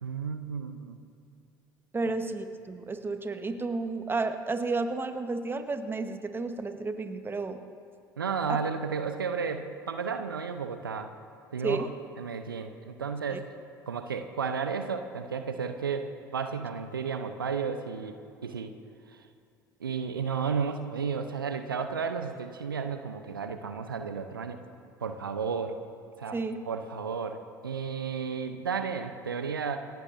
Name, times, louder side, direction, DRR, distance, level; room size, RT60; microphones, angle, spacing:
voice 1, 0.0-1.0 8.2-11.1 11.5-11.9 12.2-13.5 13.9-18.7 19.1-19.2 19.8-24.6 25.0-25.8 26.2-26.4 26.7-29.8, right 6 dB, 85° right, 8 dB, 0.7 m, -33 dB
voice 2, 1.9-7.6 8.5-8.6 11.6-11.9 26.3-26.6, right 3 dB, 20° right, 8 dB, 1.3 m, -32 dB
28.0 x 15.0 x 2.7 m, 2.5 s
figure-of-eight pair, 65°, 11 cm